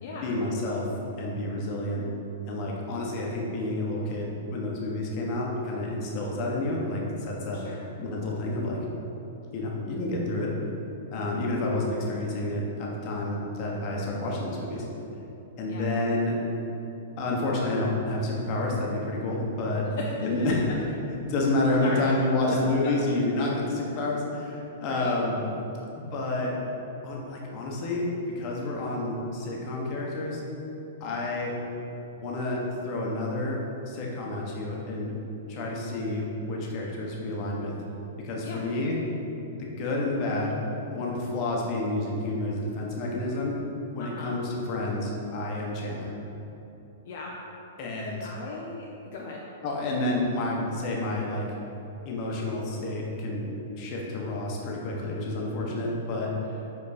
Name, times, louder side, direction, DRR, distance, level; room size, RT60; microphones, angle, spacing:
voice 1, 0.2-0.9 1.2-2.0 2.5-7.6 8.0-8.8 9.5-10.5 11.1-14.8 15.6-16.4 17.2-19.9 20.2-20.6 21.3-25.4 26.0-26.5 27.0-28.1 28.3-30.4 31.0-31.5 32.1-33.6 33.9-35.1 35.5-37.7 38.2-39.0 39.8-40.6 40.9-43.5 43.9-46.1 47.8-48.3 49.6-51.4 52.0-53.5 53.7-56.6, left 2 dB, 40° left, -2 dB, 1.2 m, -29 dB
voice 2, 7.5-7.8 15.7-15.9 19.8-20.5 21.8-22.1 22.5-22.6 22.8-22.9 24.8-25.1 38.4-38.6 44.0-44.3 47.0-47.3 48.2-49.4, left 4 dB, 60° left, -3 dB, 0.7 m, -37 dB
5.2 x 4.5 x 4.3 m, 3.0 s
hypercardioid pair, 130°, 0 cm